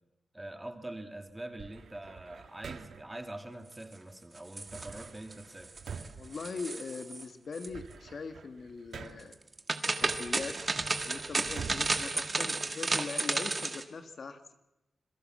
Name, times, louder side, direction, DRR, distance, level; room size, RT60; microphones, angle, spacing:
voice 1, 0.3-5.8, right 1 dB, 10° right, 7 dB, 1.9 m, -44 dB
sound 1, 1.6-3.2 4.7-7.1 7.5-9.4 10.0-13.0, right 6 dB, 75° right, 1.6 m, -47 dB
sound 2, 4.4-5.3 5.6-6.1 6.3-7.2 7.5-7.7 9.3-13.8, right 3 dB, 25° right, 1.7 m, -33 dB
voice 2, 6.2-9.4 10.0-10.6 11.0-14.5, left 4 dB, 50° left, 8 dB, 1.6 m, -41 dB
27.0 x 22.5 x 7.5 m, 0.98 s
wide cardioid pair, 155°, 0 cm